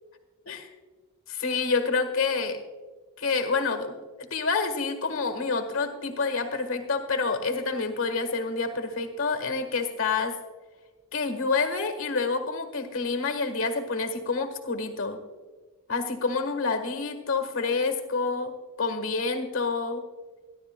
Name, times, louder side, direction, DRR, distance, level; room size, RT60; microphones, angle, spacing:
voice 1, 1.3-2.6 3.2-3.9 4.2-10.4 11.1-15.2 15.9-20.0, left 4 dB, 65° left, 7 dB, 1.5 m, -28 dB
24.0 x 11.5 x 2.3 m, 1.4 s
head